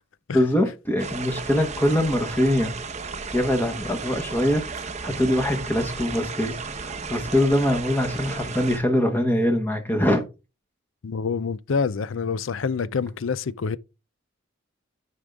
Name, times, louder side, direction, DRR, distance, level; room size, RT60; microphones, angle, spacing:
voice 1, 0.3-2.7 3.3-4.6 5.0-10.2, left 1 dB, 10° left, 1.1 m, -23 dB
sound 1, 1.0-8.8, right 4 dB, 35° right, 0.9 m, -34 dB
voice 2, 11.0-13.8, left 5 dB, 70° left, 0.5 m, -27 dB
9.7 x 5.2 x 3.5 m
head